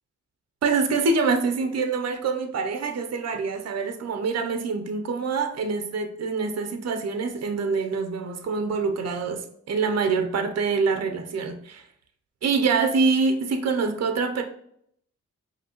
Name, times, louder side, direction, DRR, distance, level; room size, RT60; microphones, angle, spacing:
voice 1, 0.6-11.8 12.4-14.4, right 4 dB, 55° right, 6 dB, 0.7 m, -25 dB
5.1 x 2.8 x 3.0 m, 0.69 s
cardioid pair, 65°, 30 cm